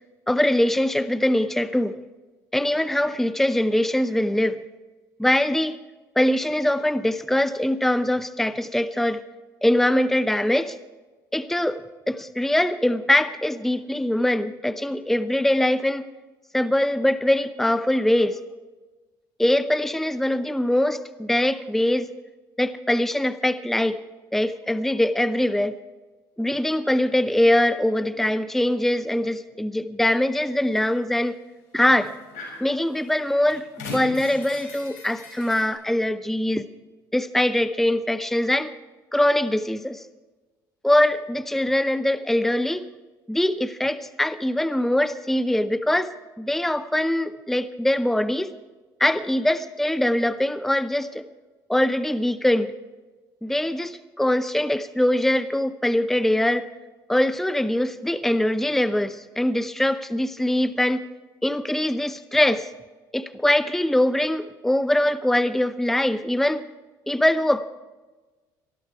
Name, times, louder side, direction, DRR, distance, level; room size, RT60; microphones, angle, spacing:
voice 1, 0.3-2.0 2.5-4.6 5.2-5.8 6.2-9.2 9.6-10.8 11.3-11.8 12.1-16.0 16.5-18.4 19.4-22.1 22.6-24.0 24.3-25.7 26.4-31.4 31.7-32.1 32.6-36.7 37.1-38.7 39.1-40.0 40.8-42.9 43.3-46.1 46.4-48.5 49.0-51.2 51.7-52.7 53.4-56.6 57.1-61.0 61.4-62.7 63.1-66.6 67.1-67.7, left 1 dB, 5° left, 12 dB, 0.7 m, -22 dB
sound 1, 30.8-30.9 31.8-32.6 33.0-35.7, left 3 dB, 80° left, 6.5 m, -39 dB
20.0 x 13.5 x 4.8 m, 1.2 s
supercardioid pair, 70°, 10 cm